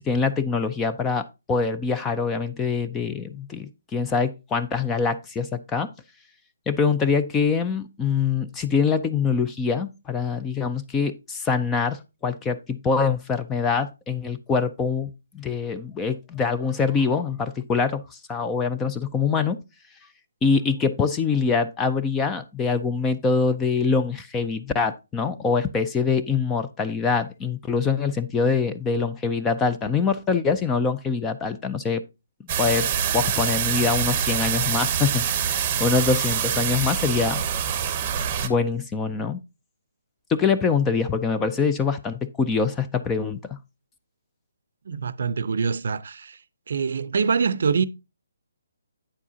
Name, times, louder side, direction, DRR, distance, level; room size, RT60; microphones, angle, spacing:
voice 1, 0.0-5.9 6.7-19.6 20.4-32.0 32.6-32.9 33.1-37.4 38.4-39.4 40.3-43.6, left 5 dB, 10° left, 0.3 m, -24 dB
sound 1, 32.5-38.5, right 8 dB, 20° right, 0.8 m, -25 dB
voice 2, 44.9-46.4 46.7-47.8, right 5 dB, 55° right, 0.5 m, -24 dB
8.8 x 7.4 x 2.7 m
hypercardioid pair, 170°, 0 cm